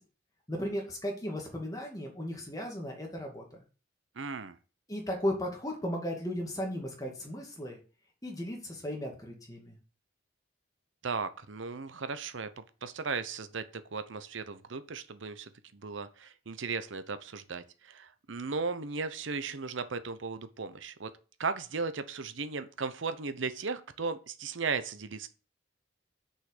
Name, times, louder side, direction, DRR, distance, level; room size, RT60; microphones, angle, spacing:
voice 1, 0.5-3.4 4.9-7.8 8.2-9.7, equal, 20° left, 1 dB, 2.3 m, -35 dB
voice 2, 4.2-4.6 11.0-21.1 21.4-25.3, right 4 dB, 75° right, 11 dB, 0.8 m, -36 dB
6.5 x 5.7 x 6.6 m, 0.36 s
head